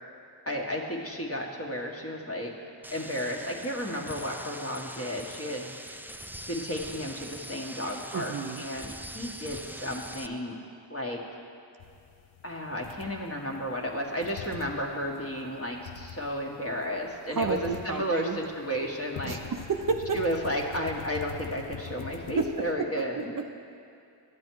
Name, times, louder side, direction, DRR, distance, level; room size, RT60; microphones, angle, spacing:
voice 1, 0.5-2.6 2.9-5.7 6.5-10.6 10.9-11.2 12.4-19.4 20.1-23.3, equal, 30° left, 0 dB, 1.5 m, -33 dB
sound 1, 2.8-10.3, right 1 dB, 5° right, 0.4 m, -43 dB
voice 2, 8.1-8.6 17.3-18.4 19.2-20.2 22.4-22.9 23.2-23.6, right 5 dB, 45° right, 5 dB, 0.6 m, -31 dB
sound 2, 11.8-22.7, left 8 dB, 85° left, 0.6 m, -45 dB
10.5 x 7.5 x 4.7 m, 2.5 s
cardioid pair, 45°, 47 cm